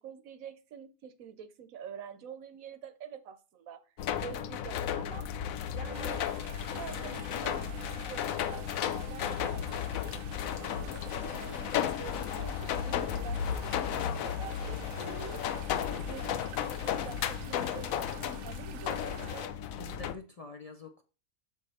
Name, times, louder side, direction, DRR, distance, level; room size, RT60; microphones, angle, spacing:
voice 1, 0.0-3.9 4.2-5.3 5.7-6.3 6.5-10.1 10.6-15.7 16.1-19.5, right 7 dB, 85° right, 1.2 m, -47 dB
sound 1, 4.0-20.1, left 9 dB, 85° left, 1.0 m, -34 dB
sound 2, 5.9-19.5, right 10 dB, 65° right, 0.9 m, -50 dB
voice 2, 19.8-21.0, left 3 dB, 40° left, 0.5 m, -46 dB
6.3 x 5.0 x 4.2 m
omnidirectional pair, 1.4 m